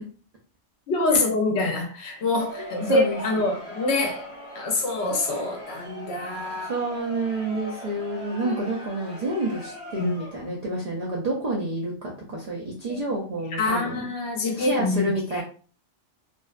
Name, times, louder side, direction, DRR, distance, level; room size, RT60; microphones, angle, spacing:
voice 1, 0.9-4.3 4.5-6.7 8.3-8.6 10.0-10.1 12.9-13.0 13.6-15.0 15.3-15.4, left 2 dB, 65° left, 0.9 m, -25 dB
Crowd, 2.1-10.6, left 1 dB, 45° right, 0.9 m, -40 dB
voice 2, 2.6-3.4 6.7-14.1 14.5-15.4, right 2 dB, 60° right, 0.4 m, -29 dB
2.5 x 2.1 x 2.3 m
omnidirectional pair, 1.2 m